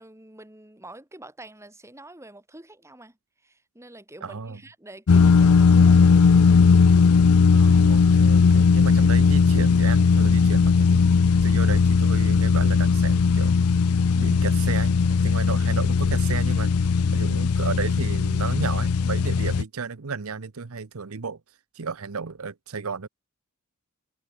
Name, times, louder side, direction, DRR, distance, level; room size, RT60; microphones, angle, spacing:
voice 1, 0.0-3.2 3.4-6.7, right 1 dB, 15° right, 3.4 m, -46 dB
voice 2, 4.2-4.6 7.5-11.0 11.4-13.7 14.1-16.7 17.1-21.4 21.7-23.1, right 5 dB, 75° right, 0.8 m, -33 dB
sound 1, 5.1-19.6, left 5 dB, 85° left, 0.5 m, -18 dB
head